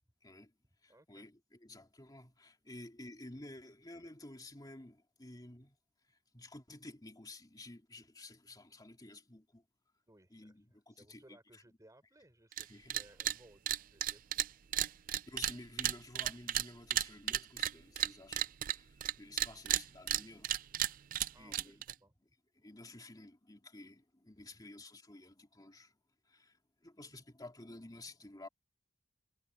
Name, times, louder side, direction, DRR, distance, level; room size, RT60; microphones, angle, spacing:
voice 1, 0.2-0.5 0.8-5.8 6.1-9.6 10.3-11.6 12.7-13.0 15.1-20.5 21.4-21.8 22.5-26.0 26.2-28.5, left 2 dB, 20° left, 2.8 m, -52 dB
voice 2, 0.9-1.3 10.1-10.5 10.9-14.6 14.8-15.0 21.3-22.1, right 1 dB, 15° right, 4.7 m, -63 dB
sound 1, 12.5-12.6 12.9-13.4 13.7-19.1 19.4-21.9, right 12 dB, 40° right, 0.4 m, -33 dB
head